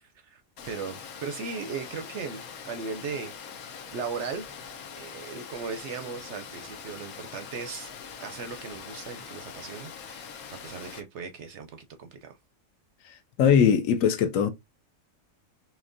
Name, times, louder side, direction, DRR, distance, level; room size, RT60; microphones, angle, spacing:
voice 1, 0.0-3.3 3.9-4.5 4.9-7.9 8.2-12.4, right 5 dB, 65° right, 0.7 m, -37 dB
Water, 0.6-11.0, left 7 dB, 90° left, 1.2 m, -43 dB
voice 2, 13.4-14.5, left 7 dB, 75° left, 0.9 m, -20 dB
4.2 x 3.0 x 2.5 m
omnidirectional pair, 1.5 m